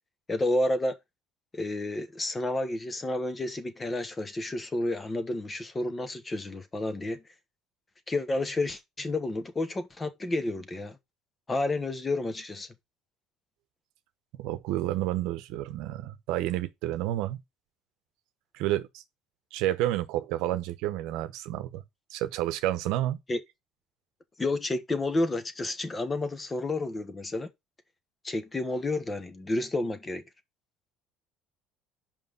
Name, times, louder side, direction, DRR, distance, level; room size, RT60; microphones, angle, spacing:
voice 1, 0.3-1.0 1.5-7.2 8.1-11.0 11.5-12.7 23.3-23.4 24.4-27.5 28.2-30.2, left 2 dB, 20° left, 1.2 m, -30 dB
voice 2, 14.4-17.4 18.5-19.0 19.5-21.8 22.1-23.2, right 14 dB, 75° right, 0.9 m, -30 dB
5.5 x 5.2 x 5.4 m
supercardioid pair, 95°, 0 cm